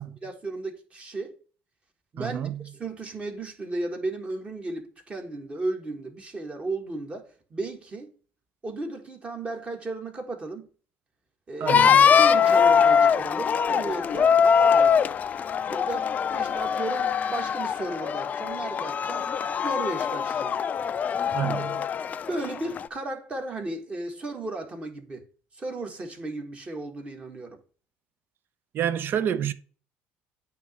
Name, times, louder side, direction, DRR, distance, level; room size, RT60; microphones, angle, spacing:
voice 1, 0.2-1.4 2.1-2.4 2.7-8.1 8.6-10.7 11.5-11.8 12.2-15.0 15.7-19.3 19.6-20.6 22.3-25.3 25.5-27.6, right 2 dB, 25° right, 1.6 m, -34 dB
voice 2, 2.2-2.6 11.6-12.1 21.3-21.9 28.7-29.5, right 9 dB, 45° right, 0.6 m, -29 dB
sound 1, 11.7-22.9, left 7 dB, 35° left, 0.4 m, -22 dB
9.0 x 3.0 x 6.2 m
cardioid pair, 125°, 5 cm